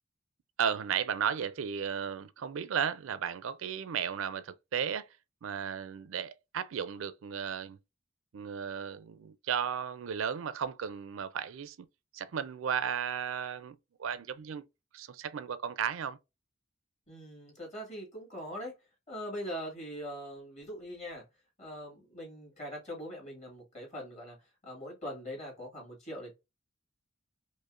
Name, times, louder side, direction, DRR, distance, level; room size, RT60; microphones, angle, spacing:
voice 1, 0.6-5.1 5.4-7.8 8.3-11.8 12.1-14.6 14.9-16.2, right 7 dB, 90° right, 0.4 m, -34 dB
voice 2, 17.1-18.7 19.1-21.2 21.6-24.4 24.6-26.3, equal, 35° left, 2.0 m, -42 dB
5.1 x 2.1 x 2.4 m
head